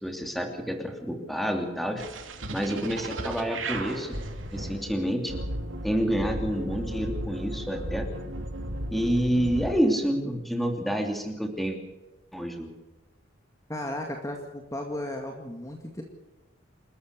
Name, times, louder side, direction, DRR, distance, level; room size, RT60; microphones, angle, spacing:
voice 1, 0.0-2.0 2.5-4.2 4.5-5.4 5.8-8.1 8.9-11.8 12.3-12.7, equal, ahead, 4 dB, 2.9 m, -28 dB
sound 1, 2.0-9.8, right 1 dB, 85° right, 2.8 m, -35 dB
voice 2, 13.7-16.0, left 1 dB, 15° left, 2 dB, 2.1 m, -35 dB
28.0 x 13.5 x 6.7 m, 1.1 s
head